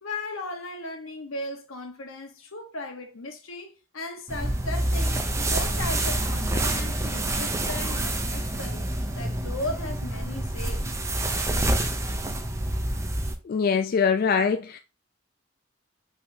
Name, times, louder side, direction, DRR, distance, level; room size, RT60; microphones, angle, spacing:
voice 1, 0.0-5.2 5.5-8.9 9.1-11.0, left 2 dB, 85° left, 1.1 m, -36 dB
sound 1, 4.3-13.3, right 1 dB, 15° right, 0.5 m, -27 dB
voice 2, 13.5-14.8, left 6 dB, 45° left, 0.3 m, -23 dB
5.4 x 3.5 x 2.7 m
head